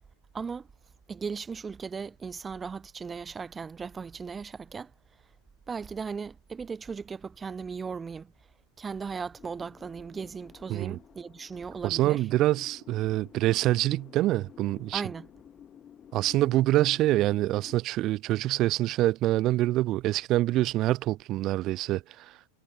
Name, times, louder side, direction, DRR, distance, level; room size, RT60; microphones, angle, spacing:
voice 1, 0.3-0.7 1.1-4.9 5.7-8.3 8.8-12.2 14.9-15.3, right 5 dB, 15° right, 1.6 m, -37 dB
sound 1, 9.4-17.7, left 9 dB, 25° left, 1.5 m, -51 dB
voice 2, 11.8-15.0 16.1-22.4, right 16 dB, 35° right, 0.8 m, -26 dB
figure-of-eight pair, 90°, 0 cm